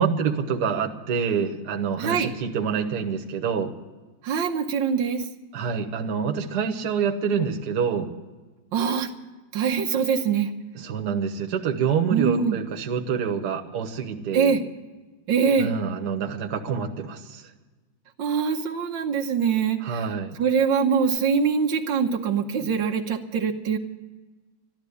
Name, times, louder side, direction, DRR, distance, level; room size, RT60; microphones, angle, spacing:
voice 1, 0.0-3.7 5.5-8.1 10.8-14.5 15.6-17.4 19.8-20.4, right 6 dB, 60° right, 4 dB, 1.7 m, -26 dB
voice 2, 2.0-2.3 4.2-5.2 8.7-9.1 9.5-10.5 12.1-12.6 14.3-14.6 15.3-15.7 18.2-20.0 20.4-23.8, right 6 dB, 85° right, 2 dB, 1.7 m, -23 dB
13.5 x 12.0 x 8.3 m, 1.3 s
omnidirectional pair, 2.0 m